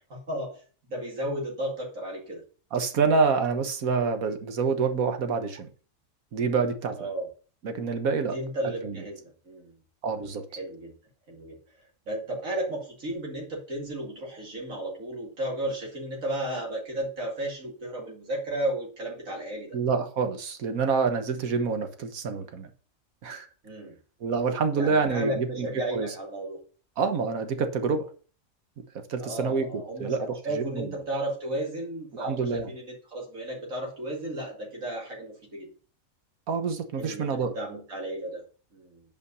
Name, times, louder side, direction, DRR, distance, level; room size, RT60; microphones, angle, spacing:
voice 1, 0.1-0.6 0.9-2.4 7.0-7.3 8.2-9.7 10.6-10.9 11.3-11.6 12.1-19.8 23.6-23.9 24.7-26.6 29.2-35.7 37.0-38.4 38.7-39.0, right 1 dB, 70° right, -2 dB, 2.8 m, -34 dB
voice 2, 2.7-5.7 6.3-7.1 7.6-8.4 8.8-9.0 10.0-10.4 19.7-22.7 23.2-23.5 24.2-25.7 25.9-26.1 27.0-28.1 29.1-30.9 32.2-32.7 36.5-37.5, right 5 dB, 90° right, 8 dB, 1.6 m, -27 dB
8.5 x 5.1 x 5.4 m, 0.39 s
omnidirectional pair, 1.4 m